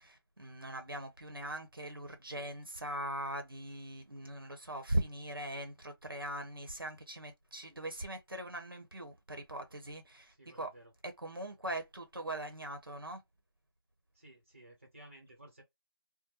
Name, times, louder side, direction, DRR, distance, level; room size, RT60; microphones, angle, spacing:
voice 1, 0.0-10.7 11.0-13.2, right 1 dB, 60° right, 0.9 m, -40 dB
voice 2, 10.4-10.9 14.1-15.6, right 1 dB, 30° right, 0.9 m, -56 dB
2.3 x 2.1 x 3.0 m
figure-of-eight pair, 175°, 13 cm